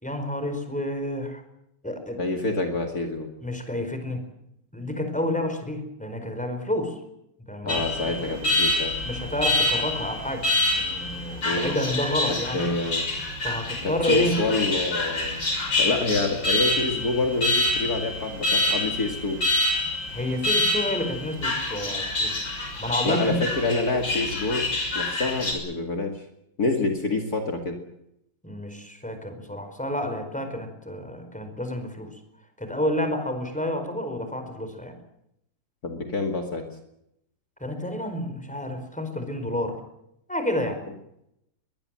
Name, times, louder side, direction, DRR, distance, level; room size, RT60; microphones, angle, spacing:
voice 1, 0.0-1.4 1.8-2.2 3.4-4.2 4.7-7.0 7.5-7.8 8.2-8.4 9.0-10.5 10.7-12.7 13.4-14.4 20.1-22.3 22.8-23.4 28.4-32.1 32.6-35.0 37.6-39.8 40.3-40.8, left 1 dB, 5° left, 7 dB, 4.7 m, -29 dB
voice 2, 2.2-3.3 7.6-8.9 11.4-11.7 12.3-13.1 13.8-15.4 15.8-19.4 23.0-24.7 24.9-26.2 26.6-27.8 35.8-36.6, left 3 dB, 55° left, 4 dB, 2.7 m, -27 dB
Alarm, 7.7-25.5, left 2 dB, 90° left, 6.9 m, -27 dB
22.5 x 20.5 x 7.7 m, 0.80 s
omnidirectional pair, 2.0 m